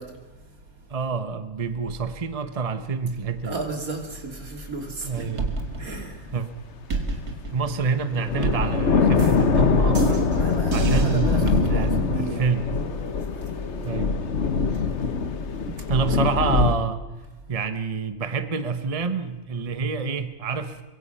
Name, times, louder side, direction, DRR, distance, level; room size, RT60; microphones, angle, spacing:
voice 1, 0.0-0.9 3.4-5.2 5.8-6.3 10.2-12.5 13.4-13.5 15.8-15.9, right 3 dB, 70° right, 3 dB, 3.4 m, -34 dB
voice 2, 0.9-3.6 5.0-5.6 6.3-6.5 7.5-10.3 10.7-12.7 13.8-14.2 15.7-17.0 17.5-20.8, right 5 dB, 25° right, 10 dB, 1.1 m, -27 dB
sound 1, 5.1-6.5 6.9-12.0, right 3 dB, 85° right, 2.6 m, -30 dB
sound 2, 5.6-6.0 6.5-6.6 7.7-7.8 8.1-16.7, left 5 dB, 50° left, 1.4 m, -23 dB
sound 3, 12.4-14.2 14.5-14.8 15.3-17.6, right 1 dB, 70° left, 6.5 m, -49 dB
24.5 x 22.5 x 5.7 m, 1.1 s
omnidirectional pair, 1.5 m